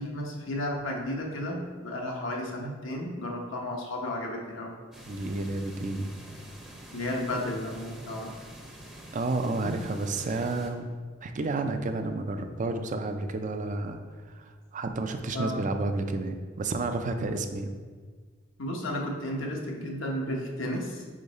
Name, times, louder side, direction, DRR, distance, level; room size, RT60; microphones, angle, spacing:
voice 1, 0.0-4.8 6.9-8.4 9.6-9.7 15.3-15.7 18.6-21.0, left 1 dB, 90° left, -1 dB, 1.0 m, -33 dB
sound 1, 4.9-10.7, right 1 dB, 5° right, 0.7 m, -47 dB
voice 2, 5.1-6.1 9.1-14.0 14.3-17.7, right 2 dB, 40° right, 7 dB, 0.5 m, -31 dB
5.0 x 4.7 x 4.1 m, 1.5 s
head